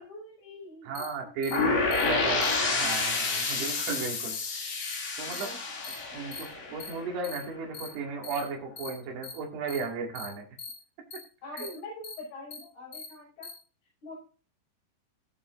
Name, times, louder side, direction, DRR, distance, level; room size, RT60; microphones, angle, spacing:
voice 1, 0.0-2.9 3.3-3.7 5.3-5.6 6.7-7.1 11.4-13.5 14.0-14.1, left 2 dB, 90° left, -4 dB, 8.2 m, -45 dB
voice 2, 0.8-4.9 5.2-5.5 5.8-10.4 11.5-11.8, right 4 dB, 75° right, 1 dB, 4.2 m, -36 dB
sound 1, 0.9-1.1 1.4-1.6 1.9-2.0 2.4-2.5 2.9-3.0 3.4-3.5 3.9-4.0 4.3-4.5 4.8-4.9 5.3-5.5 5.8-5.9 6.3-6.4 6.8-6.9 7.2-7.4 7.7-7.9 8.2-8.4 8.8-8.9 9.2-9.3 9.7-9.8 10.1-10.3 10.6-10.7 11.1-11.2 11.6-11.7 12.0-12.1 12.5-12.6 12.9-13.1 13.4-13.5, left 5 dB, 40° left, 4.4 m, -40 dB
sound 2, 1.5-7.4, left 4 dB, 65° left, 4.4 m, -29 dB
18.0 x 7.0 x 2.5 m, 0.36 s
omnidirectional pair, 4.8 m